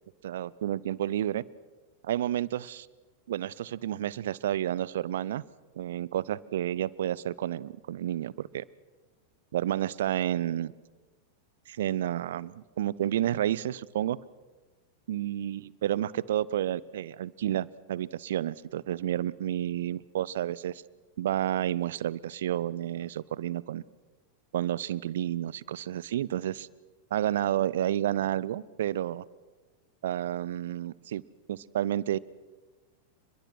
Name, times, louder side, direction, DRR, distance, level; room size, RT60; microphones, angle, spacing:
voice 1, 0.2-1.4 2.0-2.9 3.3-5.4 5.8-8.6 9.5-10.7 11.7-14.2 15.1-20.8 21.2-23.8 24.5-26.7 27.1-29.2 30.0-31.2 31.5-32.2, right 12 dB, 60° right, 22 dB, 0.6 m, -30 dB
29.5 x 22.0 x 6.1 m, 1.3 s
figure-of-eight pair, 90°, 0 cm